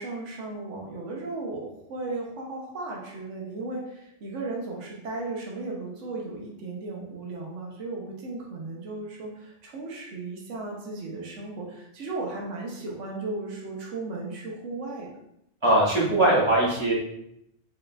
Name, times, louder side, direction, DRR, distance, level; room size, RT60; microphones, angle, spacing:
voice 1, 0.0-15.1, right 3 dB, 85° right, -1 dB, 1.2 m, -35 dB
voice 2, 15.6-16.9, right 1 dB, 25° right, -6 dB, 1.5 m, -21 dB
4.8 x 4.2 x 2.4 m, 0.78 s
omnidirectional pair, 1.2 m